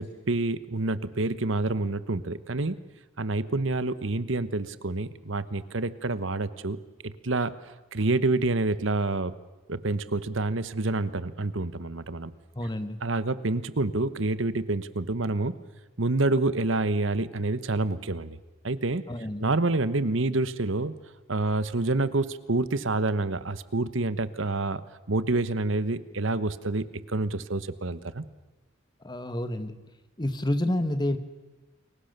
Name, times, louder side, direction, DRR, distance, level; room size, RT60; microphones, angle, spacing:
voice 1, 0.0-2.8 3.2-6.8 7.0-7.5 7.9-9.3 9.7-12.3 13.0-15.5 16.0-18.4 18.6-19.0 19.4-20.9 21.3-24.8 25.1-28.2, right 2 dB, 65° right, 14 dB, 1.1 m, -27 dB
voice 2, 12.5-13.0 19.1-19.5 29.0-29.8 30.2-31.2, left 1 dB, 20° left, 10 dB, 1.4 m, -29 dB
29.5 x 23.0 x 6.8 m, 1.1 s
head